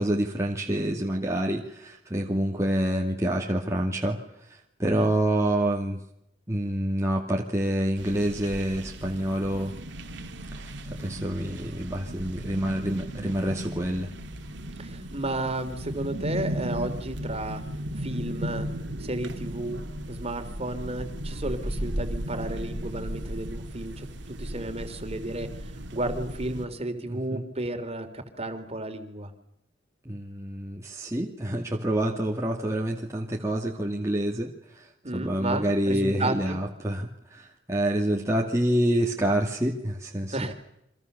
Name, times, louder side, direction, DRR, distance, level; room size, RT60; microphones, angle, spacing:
voice 1, 0.0-4.2 4.5-6.0 6.5-9.7 10.6-14.1 27.1-27.5 30.0-40.5, right 1 dB, 15° right, -1 dB, 2.4 m, -27 dB
sound 1, 8.0-26.7, equal, 65° right, 2.4 m, -36 dB
voice 2, 14.8-17.6 18.0-18.7 19.0-25.5 25.9-29.3 35.0-36.6 40.3-40.5, right 2 dB, 35° right, 7 dB, 3.4 m, -33 dB
29.5 x 25.5 x 6.9 m, 0.78 s
head